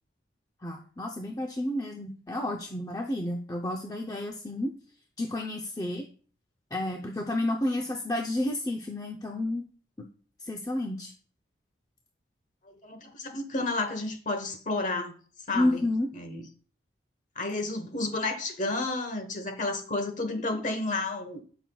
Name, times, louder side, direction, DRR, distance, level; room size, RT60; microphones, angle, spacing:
voice 1, 0.6-4.7 5.2-6.0 6.7-9.6 10.0-10.1 10.4-11.1 15.5-16.1, left 1 dB, 20° left, 1 dB, 0.6 m, -30 dB
voice 2, 12.6-15.1 15.5-16.5 17.3-21.4, left 2 dB, 40° left, 6 dB, 1.2 m, -31 dB
14.0 x 6.0 x 2.3 m, 0.43 s
head